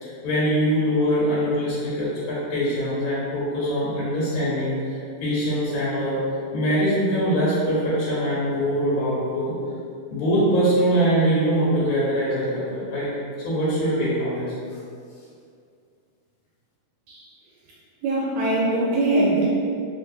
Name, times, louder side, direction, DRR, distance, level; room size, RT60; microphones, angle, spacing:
voice 1, 0.0-6.2 6.5-9.5 10.1-13.1 13.4-14.5, equal, 85° left, -8 dB, 2.5 m, -23 dB
voice 2, 18.0-19.5, right 2 dB, 80° right, -4 dB, 1.6 m, -22 dB
5.2 x 2.5 x 2.7 m, 2.3 s
omnidirectional pair, 3.3 m